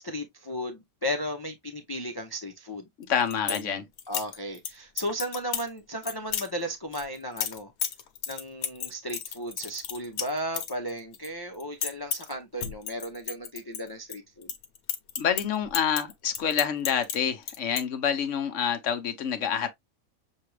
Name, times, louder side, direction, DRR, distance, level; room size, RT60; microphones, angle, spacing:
voice 1, 0.0-2.9 3.5-7.7 8.3-14.5, equal, 40° left, 0.3 m, -35 dB
sound 1, 3.0-3.6 4.0-4.7 5.0-5.7 6.0-6.5 6.9-11.3 11.5-12.3 12.6-14.2 14.4-17.2 17.4-17.8, left 8 dB, 80° left, 1.3 m, -33 dB
voice 2, 3.0-3.8 15.2-19.7, left 8 dB, 65° left, 1.1 m, -27 dB
6.6 x 2.3 x 3.2 m
omnidirectional pair, 1.5 m